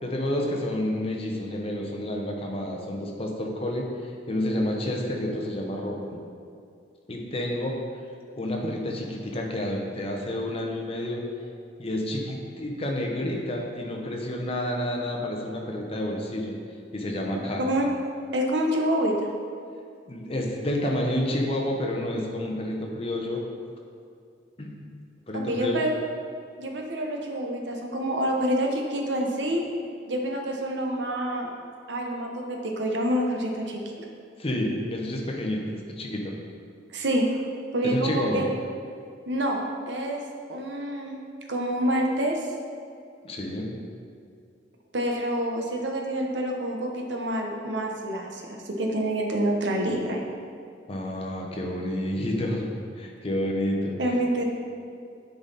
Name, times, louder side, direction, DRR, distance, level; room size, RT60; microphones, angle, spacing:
voice 1, 0.0-3.9 4.3-6.2 7.1-7.8 8.3-11.2 11.8-16.5 16.9-17.6 20.1-23.4 24.6-24.8 25.3-25.8 34.4-36.3 37.8-38.4 43.2-43.7 50.9-54.0, left 1 dB, 30° left, 0 dB, 0.9 m, -29 dB
voice 2, 18.3-19.3 25.3-25.9 26.6-29.6 30.1-31.5 31.9-34.1 36.9-37.3 37.7-38.5 39.3-40.2 40.5-41.2 41.5-42.4 44.9-50.2 54.0-54.4, right 1 dB, 75° right, 1 dB, 0.9 m, -27 dB
9.6 x 4.0 x 4.1 m, 2.3 s
head